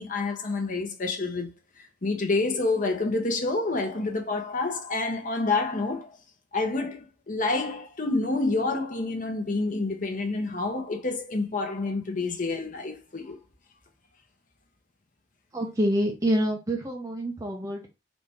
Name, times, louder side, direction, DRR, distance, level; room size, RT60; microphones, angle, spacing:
voice 1, 0.0-1.5 2.0-6.1 6.5-13.4, left 3 dB, 45° left, 0.9 m, -28 dB
voice 2, 15.5-17.9, equal, 20° right, 0.8 m, -27 dB
4.1 x 2.9 x 3.5 m
head